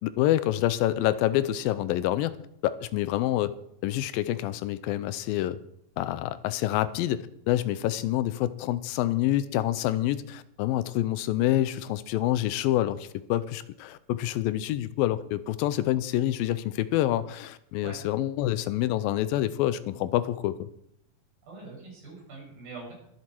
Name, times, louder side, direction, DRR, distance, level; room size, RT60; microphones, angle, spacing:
voice 1, 0.0-2.4 2.6-3.5 3.8-5.6 6.0-20.7, left 13 dB, 85° left, 14 dB, 2.4 m, -27 dB
voice 2, 21.5-22.9, right 3 dB, 80° right, -3 dB, 7.9 m, -43 dB
22.5 x 7.7 x 4.5 m, 0.75 s
omnidirectional pair, 4.1 m